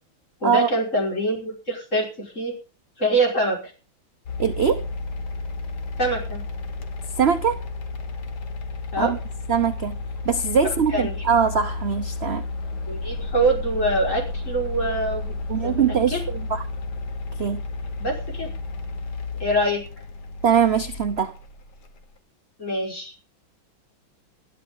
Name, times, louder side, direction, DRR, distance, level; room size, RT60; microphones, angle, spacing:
voice 1, 0.4-2.5 3.0-3.7 6.0-6.4 8.9-9.1 10.9-11.2 12.9-15.3 15.6-16.2 18.0-18.5 19.4-19.8 22.6-23.1, right 1 dB, 35° left, 5.8 m, -24 dB
sound 1, 4.3-22.0, left 3 dB, 60° left, 1.9 m, -32 dB
voice 2, 4.4-4.9 7.2-7.6 9.0-9.2 9.5-10.0 10.2-12.4 15.5-16.6 17.4-17.6 20.4-21.3, right 7 dB, 55° right, 0.7 m, -22 dB
21.0 x 12.0 x 3.9 m
omnidirectional pair, 2.2 m